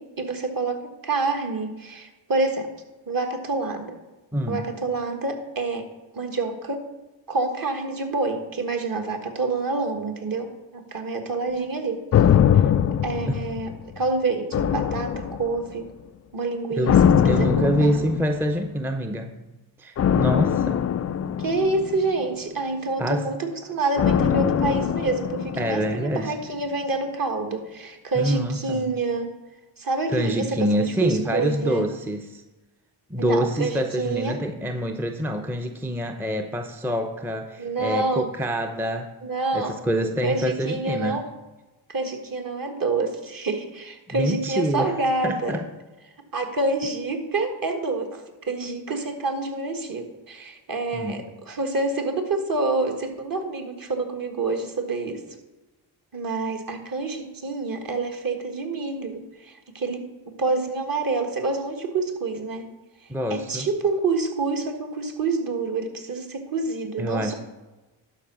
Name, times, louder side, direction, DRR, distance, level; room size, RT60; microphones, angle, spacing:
voice 1, 0.0-2.7 3.1-4.0 4.5-5.8 6.1-6.8 7.3-12.0 13.0-15.9 16.3-16.9 17.3-18.0 21.4-29.3 29.8-31.9 33.2-34.4 37.6-38.3 39.2-39.7 40.2-41.2 41.9-45.5 46.3-55.2 56.1-60.0 60.4-62.6 63.3-67.3, right 3 dB, 45° right, 5 dB, 1.7 m, -27 dB
voice 2, 4.3-4.6 13.3-13.4 16.8-19.3 19.8-20.8 23.0-23.3 25.6-26.3 28.2-28.9 30.1-32.4 33.1-39.1 39.5-41.2 44.1-45.0 45.2-45.6 50.9-51.2 63.1-63.7 67.0-67.3, equal, 5° right, 6 dB, 0.7 m, -26 dB
sound 1, 12.1-14.0 14.5-15.8 16.9-18.6 20.0-22.4 24.0-26.1 26.4-26.5, left 9 dB, 35° left, 0.4 m, -22 dB
11.5 x 4.7 x 6.1 m, 1.1 s
cardioid pair, 75°, 49 cm